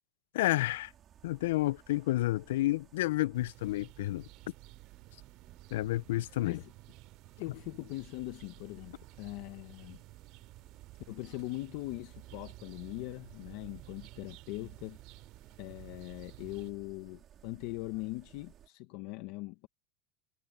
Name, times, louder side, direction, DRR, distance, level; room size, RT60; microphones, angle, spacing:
voice 1, 0.3-0.9 1.2-4.3 5.7-6.6, left 16 dB, 75° left, 0.3 m, -30 dB
sound 1, 0.6-18.7, right 10 dB, 25° right, 2.1 m, -60 dB
sound 2, 3.3-16.7, right 21 dB, 45° right, 2.7 m, -54 dB
voice 2, 7.4-10.0 11.1-15.0 15.6-19.7, left 20 dB, 45° left, 0.8 m, -41 dB
supercardioid pair, 175°, 0 cm